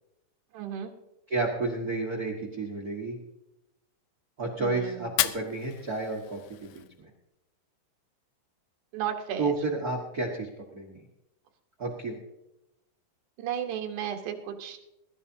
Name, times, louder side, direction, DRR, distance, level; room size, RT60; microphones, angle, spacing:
voice 1, 0.5-0.9 4.6-5.1 8.9-9.5 13.4-14.8, right 9 dB, 65° right, 2 dB, 2.6 m, -34 dB
voice 2, 1.3-3.2 4.4-7.1 9.4-10.5 10.7-11.0 11.8-12.2, right 3 dB, 85° right, 0 dB, 0.8 m, -31 dB
Fire, 5.0-7.0, left 13 dB, 75° left, 2.0 m, -33 dB
21.5 x 12.5 x 2.8 m, 0.90 s
omnidirectional pair, 4.1 m